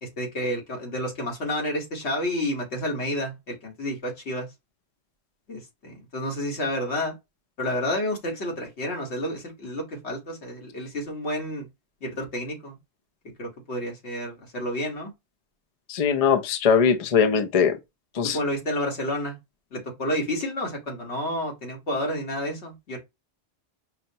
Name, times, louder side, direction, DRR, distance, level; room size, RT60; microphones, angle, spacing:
voice 1, 0.0-4.5 5.5-7.1 7.6-11.7 12.0-12.8 13.4-15.1 18.3-19.4 19.7-23.0, left 1 dB, 75° left, 1.7 m, -30 dB
voice 2, 15.9-17.8 18.1-18.4, left 6 dB, 45° left, 0.5 m, -21 dB
5.5 x 2.1 x 2.6 m
omnidirectional pair, 1.1 m